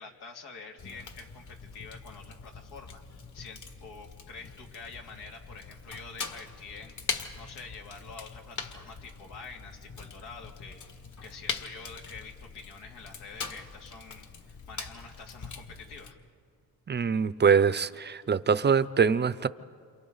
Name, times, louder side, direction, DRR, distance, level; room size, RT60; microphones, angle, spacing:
voice 1, 0.0-16.2, left 4 dB, 85° left, 1 dB, 2.7 m, -47 dB
Fire, 0.8-16.1, left 5 dB, 50° left, 1.9 m, -42 dB
voice 2, 16.9-19.5, right 6 dB, 25° right, 16 dB, 0.6 m, -24 dB
28.5 x 28.0 x 4.0 m, 2.1 s
cardioid pair, 90°, 39 cm